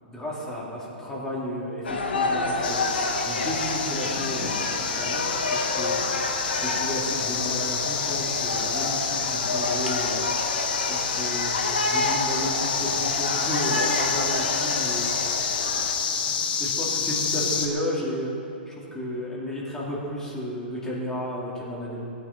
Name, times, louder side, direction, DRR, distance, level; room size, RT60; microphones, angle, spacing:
voice 1, 0.0-6.0 6.5-10.2 10.9-11.6 11.9-15.0 16.2-18.3 18.7-22.0, equal, 10° left, -6 dB, 3.9 m, -33 dB
sound 1, 1.8-15.9, left 2 dB, 85° left, 2.0 m, -29 dB
sound 2, 2.6-17.7, left 6 dB, 65° left, 1.8 m, -28 dB
17.5 x 9.2 x 5.8 m, 2.7 s
hypercardioid pair, 120°, 5 cm